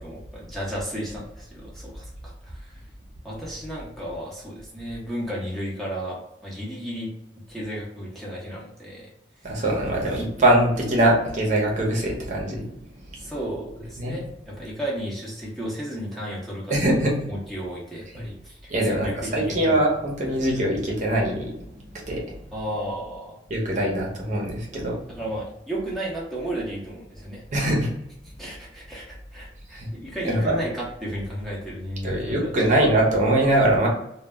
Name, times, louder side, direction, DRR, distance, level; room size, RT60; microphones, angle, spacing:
voice 1, 0.0-2.8 3.2-7.1 7.5-9.1 13.2-16.7 17.3-19.8 22.5-23.4 25.1-27.4 28.4-32.7, equal, ahead, -5 dB, 0.7 m, -33 dB
voice 2, 9.4-12.7 14.0-14.2 16.7-17.2 18.7-21.5 21.9-22.4 23.5-25.0 27.5-27.9 29.8-29.9 30.2-30.5 32.0-33.9, right 1 dB, 45° right, -2 dB, 0.7 m, -22 dB
2.2 x 2.0 x 3.4 m, 0.79 s
head